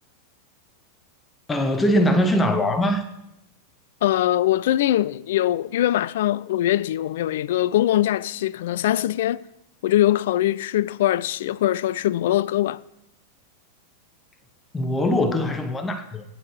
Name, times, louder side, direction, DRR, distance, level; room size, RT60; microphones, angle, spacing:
voice 1, 1.5-3.1 14.7-16.2, left 1 dB, 15° left, 1.0 m, -21 dB
voice 2, 4.0-9.4 9.8-12.8, left 13 dB, 55° left, 0.3 m, -22 dB
20.5 x 10.0 x 3.1 m
figure-of-eight pair, 90°, 0 cm